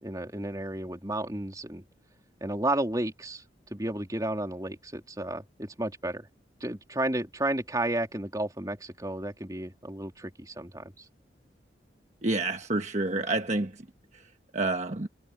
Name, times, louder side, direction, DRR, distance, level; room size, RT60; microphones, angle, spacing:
voice 1, 0.0-1.8 2.4-3.4 3.7-6.3 6.6-11.1, right 1 dB, 20° right, 3.5 m, -32 dB
voice 2, 12.2-13.8 14.5-15.1, right 2 dB, 40° right, 1.2 m, -28 dB
head